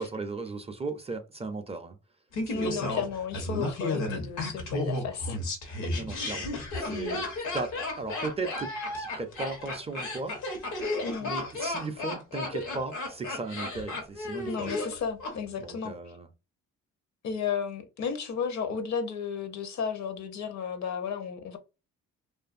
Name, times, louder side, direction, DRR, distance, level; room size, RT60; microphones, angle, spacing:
voice 1, 0.0-2.0 2.5-3.1 5.9-7.3 7.5-10.3 11.2-14.7 15.6-16.3, right 3 dB, 20° right, 0.4 m, -36 dB
Laughter, 2.3-15.3 15.6-15.7, left 2 dB, 85° left, 1.0 m, -33 dB
voice 2, 2.5-5.4 5.8-5.9 6.9-7.2 11.0-11.3 14.5-15.9 17.2-21.6, left 6 dB, 65° left, 0.7 m, -33 dB
2.5 x 2.5 x 2.4 m
cardioid pair, 90°, 30 cm